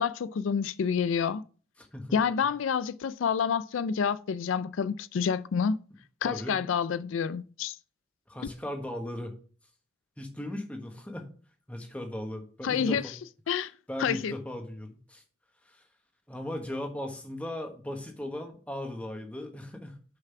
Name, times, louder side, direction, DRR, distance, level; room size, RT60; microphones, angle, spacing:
voice 1, 0.0-1.4 2.1-5.8 6.2-7.8 12.6-13.0 13.5-13.7 14.0-14.3, left 6 dB, 80° left, 0.4 m, -28 dB
voice 2, 1.8-2.1 6.2-6.6 8.3-9.3 10.2-11.3 11.7-13.1 13.9-15.2 15.6-15.8 16.3-20.0, left 1 dB, 5° left, 1.3 m, -37 dB
6.8 x 5.8 x 5.7 m
head